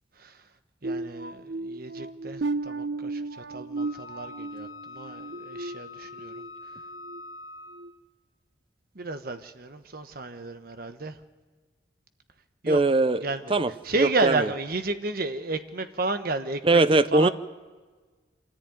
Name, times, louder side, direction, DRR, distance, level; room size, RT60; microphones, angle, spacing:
voice 1, 0.8-6.4 8.9-11.2 12.6-12.8 13.2-13.4 13.8-16.8 17.1-17.3, right 3 dB, 50° right, 8 dB, 1.2 m, -32 dB
sound 1, 0.8-6.5 6.9-7.2 7.7-7.9, right 3 dB, 70° right, 0.9 m, -35 dB
Wind instrument woodwind instrument, 3.8-8.0, left 4 dB, 65° left, 3.2 m, -44 dB
voice 2, 12.7-13.2 13.5-14.5 16.6-17.3, right 2 dB, 30° right, 13 dB, 0.6 m, -21 dB
25.5 x 14.5 x 9.3 m, 1.4 s
head